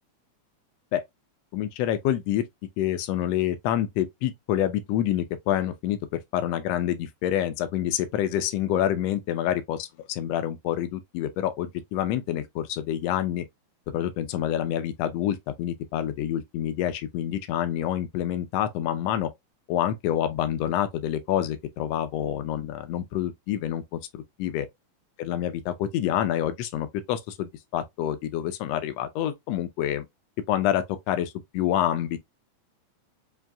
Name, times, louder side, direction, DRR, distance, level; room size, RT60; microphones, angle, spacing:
voice 1, 1.5-2.4 2.8-13.4 13.9-19.3 19.7-24.7 25.2-30.1 30.5-32.2, left 11 dB, 85° left, 1.4 m, -27 dB
5.7 x 2.6 x 2.2 m
omnidirectional pair, 3.4 m